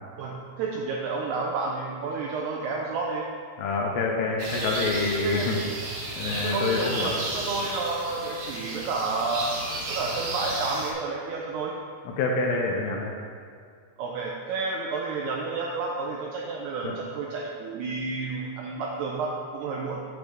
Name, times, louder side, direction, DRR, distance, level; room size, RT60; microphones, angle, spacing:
voice 1, 0.2-3.3 5.2-5.5 6.4-9.5 9.9-11.8 14.0-20.0, right 3 dB, 85° right, -1 dB, 2.3 m, -30 dB
voice 2, 3.6-5.6 6.2-7.2 12.2-13.1 16.8-16.9, left 3 dB, 80° left, -1 dB, 2.6 m, -26 dB
sound 1, 4.4-10.9, right 2 dB, 70° right, 1.6 m, -33 dB
9.0 x 3.5 x 6.5 m, 2.2 s
omnidirectional pair, 5.4 m